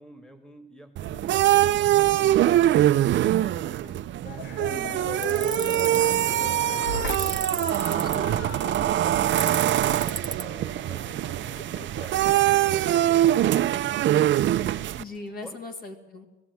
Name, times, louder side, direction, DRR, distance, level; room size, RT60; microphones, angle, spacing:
voice 1, 0.0-4.1 5.0-7.9 9.0-14.0 15.4-15.6, equal, 5° left, 7 dB, 1.7 m, -48 dB
sound 1, 1.0-15.0, right 13 dB, 90° right, 0.6 m, -23 dB
sound 2, 4.2-15.5, left 3 dB, 80° left, 1.9 m, -39 dB
voice 2, 4.7-5.0 7.9-8.5 11.6-11.9 15.0-16.3, left 3 dB, 55° left, 4 dB, 2.9 m, -40 dB
Tools, 5.2-6.0 7.1-8.2 9.4-10.4, right 4 dB, 20° right, 0.9 m, -32 dB
17.5 x 16.0 x 9.4 m, 1.1 s
wide cardioid pair, 165°, 19 cm